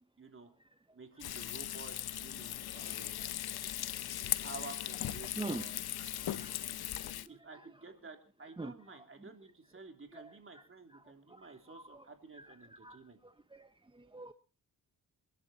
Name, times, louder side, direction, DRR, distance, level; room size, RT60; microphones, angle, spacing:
voice 1, 0.2-0.5 0.9-3.5 4.4-6.8 7.3-13.2, right 3 dB, 35° right, 6 dB, 3.3 m, -52 dB
Frying (food), 1.2-7.3, left 12 dB, 85° left, 0.8 m, -39 dB
voice 2, 5.2-5.7 6.2-6.7 7.0-7.1 8.6-8.7 10.1-10.3 11.3-12.0 12.4-14.3, right 2 dB, 15° right, 11 dB, 0.8 m, -45 dB
28.5 x 11.0 x 4.3 m, 0.37 s
cardioid pair, 90°, 37 cm